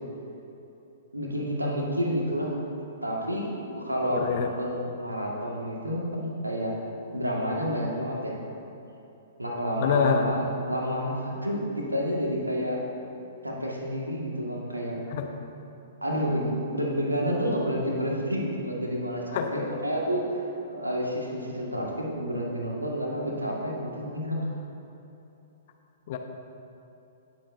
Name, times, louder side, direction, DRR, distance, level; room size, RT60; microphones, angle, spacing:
voice 1, 1.1-2.5 3.0-6.8 7.1-8.4 9.4-12.8 13.4-15.0 16.0-20.4 20.7-24.5, equal, 85° right, -2 dB, 1.8 m, -29 dB
voice 2, 4.1-4.5 9.8-10.3 15.1-15.3 19.3-19.6 26.1-26.2, left 7 dB, 45° left, 5 dB, 0.8 m, -26 dB
17.5 x 7.4 x 2.7 m, 2.9 s
figure-of-eight pair, 115°, 0 cm